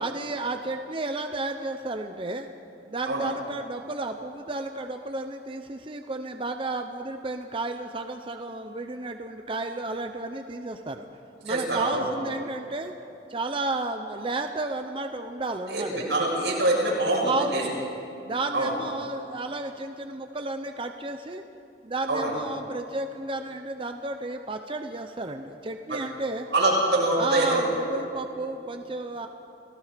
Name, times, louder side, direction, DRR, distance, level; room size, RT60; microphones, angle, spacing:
voice 1, 0.0-2.5 2.9-11.1 11.4-12.9 13.3-16.1 17.2-17.9 18.2-21.4 21.8-26.5 27.2-29.3, right 2 dB, 30° right, 6 dB, 0.7 m, -32 dB
voice 2, 11.5-12.1 15.7-17.6 18.5-18.7 22.1-22.3 26.5-27.6, right 2 dB, 90° right, -3 dB, 6.8 m, -24 dB
29.5 x 18.0 x 5.1 m, 2.9 s
head